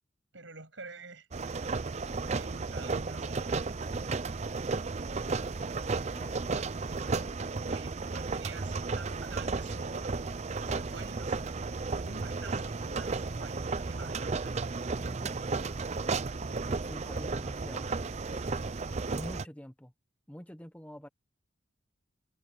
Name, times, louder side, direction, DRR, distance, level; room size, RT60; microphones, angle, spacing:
voice 1, 0.3-1.3 2.3-3.4 7.6-10.1 10.6-11.4 11.9-14.6, right 3 dB, 70° right, 7.5 m, -48 dB
sound 1, 1.3-19.4, right 4 dB, 35° right, 0.5 m, -34 dB
voice 2, 6.2-6.5 15.0-15.3 16.7-18.4 19.1-19.9 20.3-21.1, equal, 5° left, 1.1 m, -46 dB
head